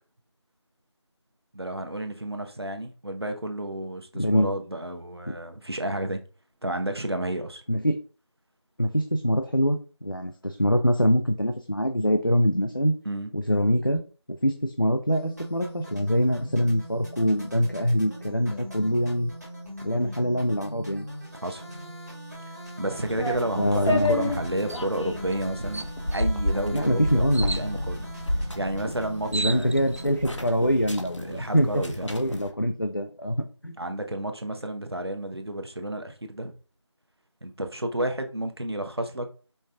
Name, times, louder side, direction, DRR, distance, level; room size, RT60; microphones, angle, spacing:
voice 1, 1.5-6.2 6.6-7.6 13.0-13.3 21.4-21.6 22.8-30.2 31.2-32.1 33.8-36.5 37.4-39.3, right 1 dB, 60° right, 0.8 m, -31 dB
voice 2, 4.1-4.5 7.7-8.0 8.8-12.9 13.3-14.0 14.4-19.3 19.8-21.1 23.6-24.1 26.7-27.7 29.3-31.8 32.1-33.7, equal, 45° left, 0.4 m, -24 dB
sound 1, 15.1-30.1, equal, 35° right, 1.3 m, -41 dB
sound 2, 22.9-32.5, left 1 dB, 85° left, 1.0 m, -31 dB
sound 3, 24.7-24.9 25.3-25.4 25.7-26.3 27.3-27.7 28.8-28.9 29.1-30.1, right 3 dB, 80° right, 0.4 m, -33 dB
5.2 x 2.2 x 3.7 m
figure-of-eight pair, 180°, 15 cm